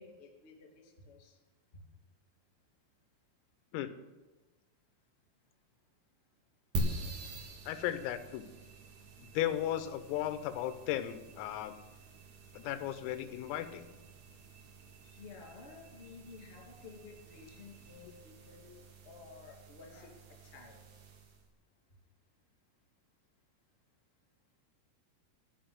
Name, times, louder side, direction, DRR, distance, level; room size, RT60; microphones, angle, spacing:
voice 1, 0.0-1.4 15.1-20.1 20.4-20.8, left 4 dB, 35° left, 0 dB, 0.9 m, -53 dB
sound 1, 6.7-21.5, right 1 dB, 85° right, 1.6 m, -45 dB
voice 2, 7.7-8.5 9.3-11.7 12.5-13.9, left 12 dB, 90° left, 10 dB, 3.5 m, -35 dB
13.5 x 5.6 x 8.8 m, 1.2 s
omnidirectional pair, 5.8 m